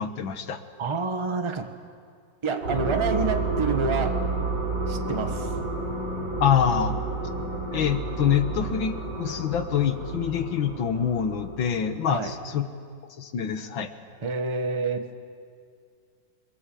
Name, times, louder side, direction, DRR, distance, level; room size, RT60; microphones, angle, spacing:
voice 1, 0.0-0.6 6.4-6.9 7.7-12.6 13.2-13.9, left 8 dB, 90° left, 8 dB, 2.1 m, -25 dB
voice 2, 0.8-1.8 2.4-4.2 4.9-5.6 12.1-12.4 14.2-15.1, right 4 dB, 20° right, 6 dB, 1.1 m, -28 dB
sound 1, 2.6-12.4, right 3 dB, 60° right, 7.4 m, -30 dB
27.0 x 23.0 x 7.7 m, 2.2 s
omnidirectional pair, 2.1 m